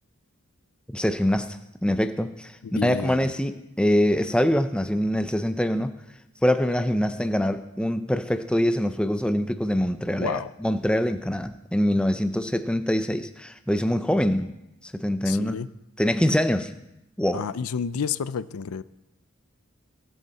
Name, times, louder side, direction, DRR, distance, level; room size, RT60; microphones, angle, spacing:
voice 1, 0.9-5.9 6.4-14.5 14.8-15.6 16.0-16.7 17.2-17.4, equal, 5° left, 9 dB, 0.5 m, -24 dB
voice 2, 2.6-3.3 10.2-10.5 15.3-15.7 17.3-18.8, left 6 dB, 80° left, 16 dB, 0.5 m, -30 dB
22.5 x 9.3 x 4.1 m, 0.88 s
head